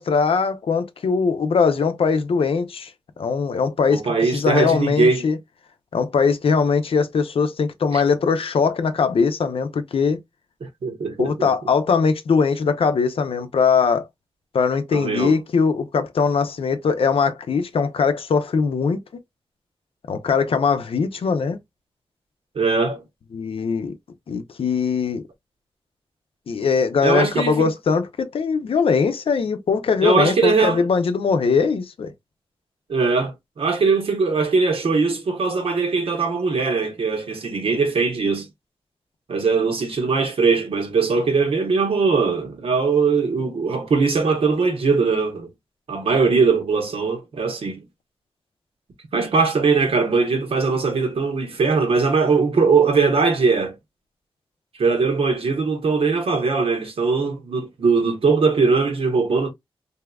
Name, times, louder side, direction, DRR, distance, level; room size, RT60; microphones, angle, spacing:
voice 1, 0.0-2.9 3.2-5.4 5.9-10.2 11.2-14.1 14.5-19.0 20.1-21.6 23.3-23.9 24.3-25.2 26.5-32.1, left 5 dB, 80° left, 0.6 m, -21 dB
voice 2, 3.9-5.2 7.9-8.0 10.8-11.5 14.9-15.4 22.5-23.0 27.0-27.7 30.0-30.8 32.9-38.5 39.3-45.5 45.9-47.8 49.1-53.8 54.8-59.5, right 4 dB, 90° right, 0.9 m, -20 dB
3.4 x 2.7 x 2.2 m
wide cardioid pair, 145°, 9 cm